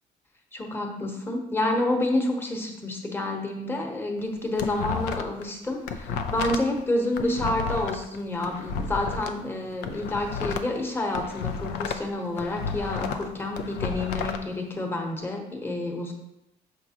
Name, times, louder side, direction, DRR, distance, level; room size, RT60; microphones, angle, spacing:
voice 1, 0.5-16.1, left 1 dB, 15° left, 2 dB, 1.0 m, -29 dB
sound 1, 4.2-5.4 5.7-9.3 9.7-12.1 12.4-14.4, left 6 dB, 85° left, 0.5 m, -32 dB
6.6 x 5.2 x 2.9 m, 0.88 s
cardioid pair, 110°, 17 cm